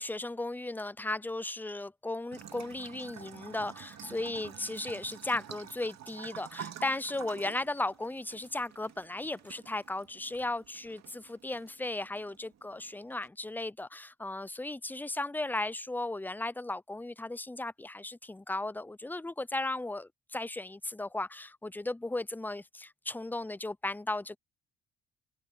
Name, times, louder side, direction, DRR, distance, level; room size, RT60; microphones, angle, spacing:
voice 1, 0.0-24.4, left 2 dB, 5° left, 0.5 m, -36 dB
Bathtub (filling or washing) / Trickle dribble, 2.3-13.3, right 8 dB, 60° right, 2.6 m, -49 dB
open air
cardioid pair, 90°, 30 cm